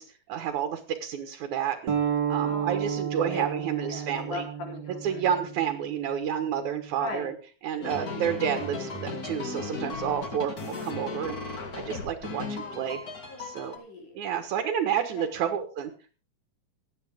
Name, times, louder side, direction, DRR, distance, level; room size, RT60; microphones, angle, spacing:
voice 1, 0.0-1.9 2.3-4.4 5.0-7.3 7.6-13.0 13.4-13.7 14.2-15.9, right 9 dB, 75° right, 6 dB, 2.7 m, -30 dB
sound 1, 1.9-7.1, right 8 dB, 40° right, 2.0 m, -32 dB
voice 2, 2.4-5.3 7.0-7.3 10.7-11.0 12.5-14.2 14.9-15.3, left 3 dB, 75° left, 0 dB, 5.4 m, -40 dB
sound 2, 7.8-13.8, left 3 dB, 35° left, 2.2 m, -36 dB
26.0 x 8.9 x 3.6 m, 0.38 s
omnidirectional pair, 3.5 m